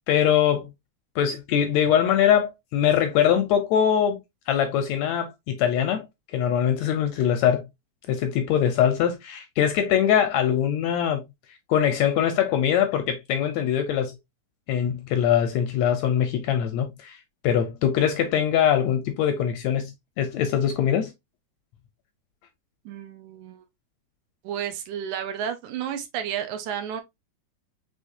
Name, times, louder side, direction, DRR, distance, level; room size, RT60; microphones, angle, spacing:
voice 1, 0.1-0.7 1.2-4.2 4.5-6.1 6.3-7.6 8.1-11.2 11.7-14.2 14.7-17.2 17.4-21.1, left 9 dB, 80° left, 1.7 m, -22 dB
voice 2, 22.9-23.6 24.4-27.0, right 9 dB, 75° right, 2.1 m, -32 dB
5.6 x 3.4 x 2.6 m
omnidirectional pair, 3.6 m